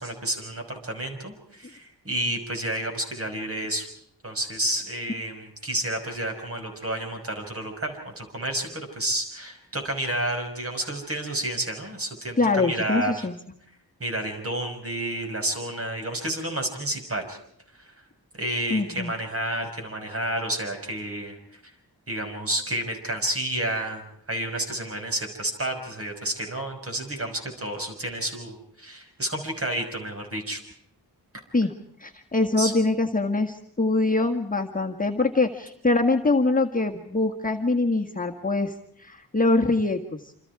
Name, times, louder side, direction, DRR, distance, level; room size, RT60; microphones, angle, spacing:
voice 1, 0.0-3.9 4.2-13.3 14.0-17.4 17.7-17.9 18.4-21.6 22.1-30.6 32.6-32.7, right 1 dB, 35° right, 3 dB, 5.9 m, -30 dB
voice 2, 12.4-13.4 18.7-19.1 31.5-31.7 32.0-38.7 39.0-40.0, left 3 dB, 20° left, 1 dB, 1.6 m, -23 dB
28.0 x 27.0 x 4.8 m, 0.69 s
wide cardioid pair, 165°, 38 cm